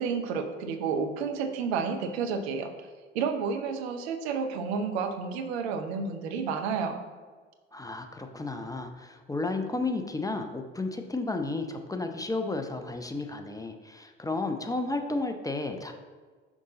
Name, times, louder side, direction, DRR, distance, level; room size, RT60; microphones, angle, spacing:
voice 1, 0.0-2.7 3.1-7.0, right 5 dB, 75° right, 7 dB, 0.8 m, -30 dB
voice 2, 7.7-15.9, left 3 dB, 10° left, 5 dB, 0.6 m, -32 dB
6.1 x 5.2 x 3.8 m, 1.4 s
hypercardioid pair, 60°, 33 cm